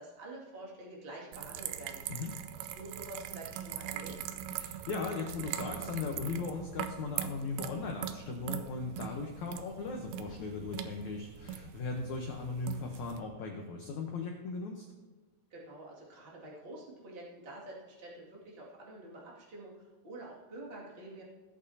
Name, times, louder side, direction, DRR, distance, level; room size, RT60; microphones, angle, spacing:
voice 1, 0.0-2.0 2.7-4.2 15.5-21.2, right 1 dB, 25° right, -4 dB, 1.2 m, -48 dB
sound 1, 1.3-13.2, right 10 dB, 80° right, 2.2 m, -41 dB
voice 2, 4.5-14.9, left 4 dB, 90° left, 1 dB, 1.6 m, -38 dB
17.5 x 8.4 x 2.8 m, 1.3 s
omnidirectional pair, 4.7 m